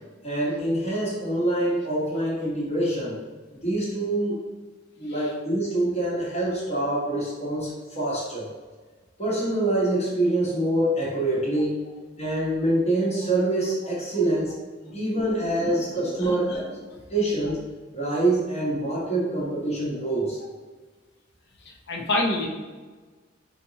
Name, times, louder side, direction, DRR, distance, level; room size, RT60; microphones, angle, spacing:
voice 1, 0.2-3.1 3.6-4.4 5.0-7.7 7.9-8.5 9.2-11.8 12.2-14.6 14.9-16.6 17.1-17.7 17.9-20.4, right 1 dB, 35° left, -8 dB, 1.1 m, -25 dB
voice 2, 15.3-15.8 16.2-16.7 21.6-22.5, left 2 dB, 60° left, 0 dB, 0.8 m, -29 dB
5.0 x 2.8 x 2.8 m, 1.3 s
head